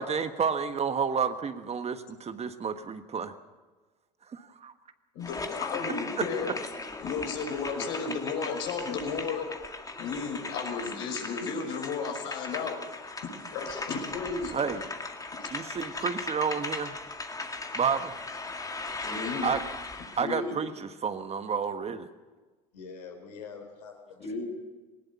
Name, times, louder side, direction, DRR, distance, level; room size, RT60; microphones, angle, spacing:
voice 1, 0.0-3.3 4.3-4.7 14.5-14.8 15.5-17.0 17.7-18.1 19.4-19.6 20.2-22.1, right 6 dB, 30° right, 9 dB, 1.4 m, -30 dB
voice 2, 5.1-6.5 7.0-9.4 10.0-12.8 13.5-14.6 15.4-15.5 19.0-19.5 20.2-20.5 24.2-24.5, left 5 dB, 65° left, 3 dB, 5.6 m, -33 dB
sound 1, 5.2-20.3, left 3 dB, 15° left, 2.0 m, -38 dB
voice 3, 22.7-24.5, left 5 dB, 80° left, 4 dB, 3.6 m, -45 dB
19.5 x 19.0 x 7.2 m, 1.3 s
hypercardioid pair, 70°, 21 cm